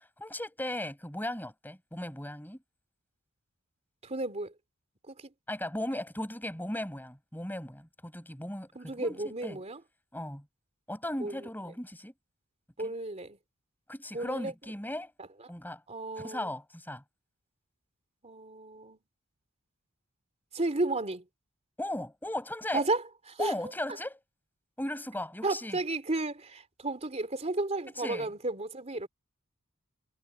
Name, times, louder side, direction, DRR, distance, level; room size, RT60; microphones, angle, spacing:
voice 1, 0.2-2.6 5.5-9.6 10.1-10.4 10.9-12.1 12.8-12.9 13.9-15.1 15.5-15.8 16.2-17.0 21.8-22.8 23.4-24.2 24.8-25.8 28.0-28.3, left 1 dB, 10° left, 7.9 m, -37 dB
voice 2, 4.0-4.5 5.1-5.2 8.7-9.8 11.2-11.5 12.8-13.4 14.1-14.5 15.2-15.3 15.9-16.5 18.2-19.0 20.5-21.2 22.7-23.0 23.3-23.5 25.4-29.1, right 2 dB, 30° right, 3.4 m, -33 dB
head